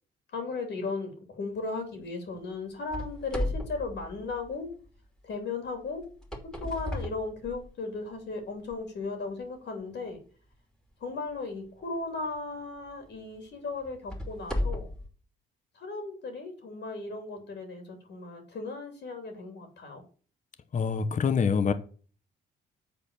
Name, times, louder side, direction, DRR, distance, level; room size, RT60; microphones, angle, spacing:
voice 1, 0.3-4.7 5.2-6.0 6.6-10.2 11.0-14.9 15.7-20.0, left 3 dB, 60° left, 3.0 m, -36 dB
sound 1, 2.9-4.9 6.0-8.0 8.6-8.7 9.4-9.5 12.1-12.3 12.9-13.0 13.8-15.1, left 1 dB, 5° left, 2.6 m, -35 dB
voice 2, 20.7-21.7, left 6 dB, 40° left, 0.9 m, -25 dB
7.8 x 4.3 x 6.7 m
cardioid pair, 90°, 20 cm